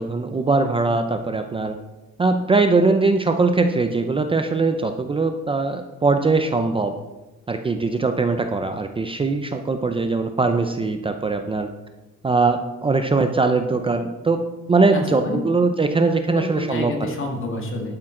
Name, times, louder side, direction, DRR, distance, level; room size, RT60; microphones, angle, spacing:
voice 1, 0.0-1.8 2.2-6.9 7.5-11.7 12.2-14.4 14.7-16.9, right 3 dB, 20° right, 6 dB, 0.5 m, -21 dB
voice 2, 14.9-15.5 16.3-18.0, left 2 dB, 45° left, 2 dB, 2.1 m, -28 dB
11.5 x 8.8 x 3.8 m, 1.0 s
cardioid pair, 155°, 29 cm